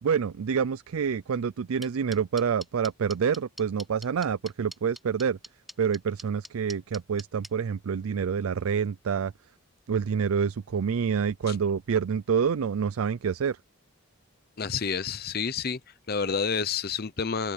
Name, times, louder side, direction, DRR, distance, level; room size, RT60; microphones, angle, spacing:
voice 1, 0.0-5.4 5.8-9.3 9.9-13.6, right 6 dB, 80° right, 0.4 m, -27 dB
sound 1, 1.8-7.5, equal, ahead, 4.5 m, -42 dB
voice 2, 14.6-15.8 16.1-17.5, left 6 dB, 45° left, 0.7 m, -29 dB
open air
head